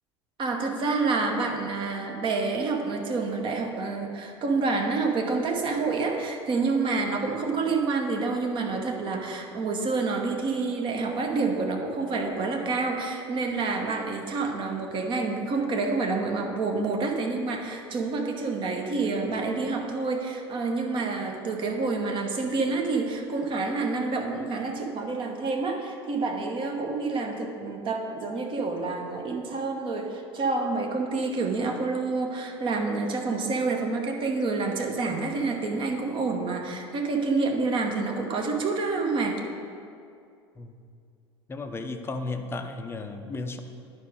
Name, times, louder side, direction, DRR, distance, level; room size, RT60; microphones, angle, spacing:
voice 1, 0.4-39.4, right 3 dB, 35° right, 2 dB, 1.0 m, -28 dB
voice 2, 41.5-43.6, left 3 dB, 15° left, 6 dB, 0.6 m, -34 dB
10.0 x 5.0 x 4.7 m, 2.4 s
figure-of-eight pair, 70°, 15 cm